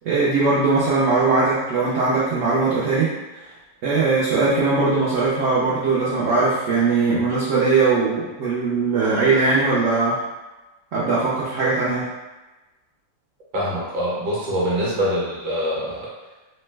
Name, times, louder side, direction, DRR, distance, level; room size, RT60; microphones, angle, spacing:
voice 1, 0.0-3.1 3.8-10.2 10.9-12.0, right 3 dB, 70° right, -8 dB, 0.7 m, -20 dB
voice 2, 13.5-16.1, equal, 35° right, -6 dB, 0.7 m, -24 dB
3.0 x 2.1 x 3.2 m, 1.1 s
omnidirectional pair, 2.0 m